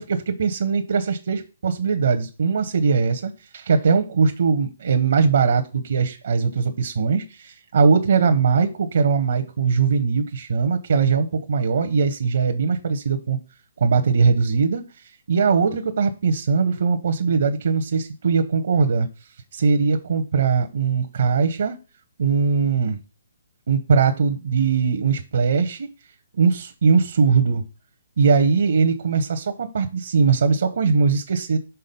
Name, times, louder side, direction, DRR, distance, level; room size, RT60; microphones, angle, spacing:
voice 1, 0.0-13.4 13.8-19.1 19.5-21.8 22.2-23.0 23.7-25.9 26.3-27.6 28.2-31.6, right 5 dB, 65° right, 0.8 m, -20 dB
5.8 x 3.8 x 5.3 m
hypercardioid pair, 140°, 0 cm